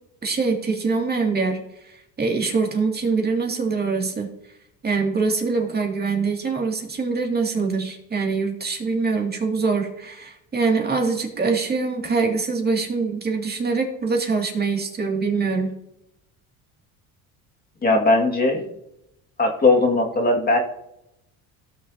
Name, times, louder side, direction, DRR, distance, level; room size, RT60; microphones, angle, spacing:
voice 1, 0.2-4.3 4.8-15.7, right 4 dB, 25° right, 1 dB, 2.4 m, -24 dB
voice 2, 17.8-18.6 19.4-20.6, left 2 dB, 25° left, 1 dB, 1.9 m, -18 dB
17.0 x 6.0 x 2.8 m, 0.83 s
supercardioid pair, 100°, 36 cm